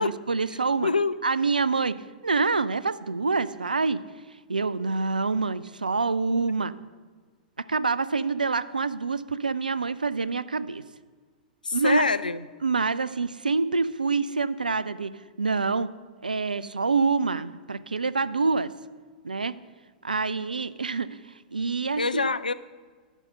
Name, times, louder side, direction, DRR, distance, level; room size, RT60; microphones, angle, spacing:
voice 1, 0.0-0.9 1.2-4.0 4.5-6.7 7.7-10.8 11.7-12.0 12.6-15.1 15.4-15.9 16.2-18.7 19.2-19.6 20.0-21.1 21.5-22.3, right 4 dB, 80° right, 17 dB, 0.3 m, -26 dB
voice 2, 0.8-1.2 11.6-12.5 22.0-22.5, left 4 dB, 80° left, 15 dB, 0.3 m, -25 dB
11.0 x 5.5 x 5.1 m, 1.5 s
figure-of-eight pair, 100°, 4 cm